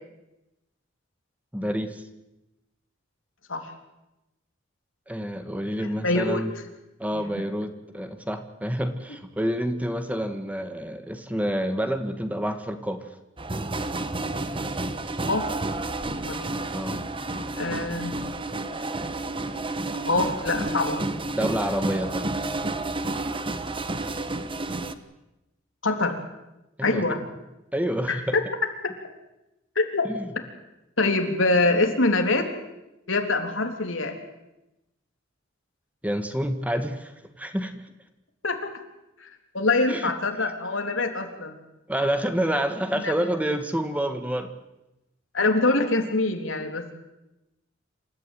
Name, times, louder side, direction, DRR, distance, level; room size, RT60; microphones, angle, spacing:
voice 1, 1.5-2.0 5.1-6.5 7.0-13.0 16.7-17.0 21.3-22.3 26.8-27.0 27.7-28.4 30.0-30.3 36.0-37.1 37.4-37.9 39.9-40.1 41.9-44.5, equal, 10° right, 8 dB, 1.7 m, -28 dB
voice 2, 5.8-6.4 7.1-7.2 15.3-15.5 16.1-16.5 17.6-18.2 20.1-21.1 25.8-26.2 26.8-27.2 28.1-28.4 29.8-30.0 31.0-32.5 33.1-34.2 38.4-38.7 39.2-39.3 39.5-41.6 42.9-43.1 45.3-46.9, left 2 dB, 85° left, 4 dB, 3.5 m, -24 dB
sound 1, 13.4-24.9, right 2 dB, 25° right, 1.2 m, -30 dB
27.5 x 14.0 x 9.3 m, 0.94 s
head